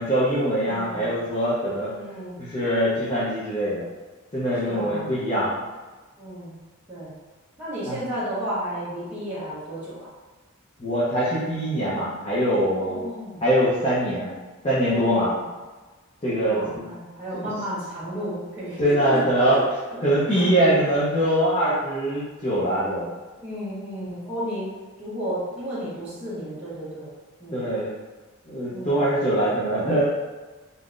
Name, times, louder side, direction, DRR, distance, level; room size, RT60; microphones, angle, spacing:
voice 1, 0.0-1.9 2.4-3.8 4.3-5.6 7.9-8.0 10.8-13.0 13.4-14.3 14.6-15.3 16.2-16.6 17.3-17.5 18.8-19.6 20.0-23.1 27.5-27.9 28.5-30.0, equal, 30° left, -10 dB, 0.6 m, -23 dB
voice 2, 0.6-1.1 1.9-2.4 4.6-5.1 6.2-6.5 6.9-7.1 7.6-10.1 12.7-13.4 14.9-15.5 16.4-19.2 19.5-19.6 20.3-20.5 23.4-27.1 27.4-27.7 28.7-29.0, right 1 dB, 10° right, -12 dB, 1.0 m, -33 dB
3.6 x 2.7 x 2.4 m, 1.3 s
head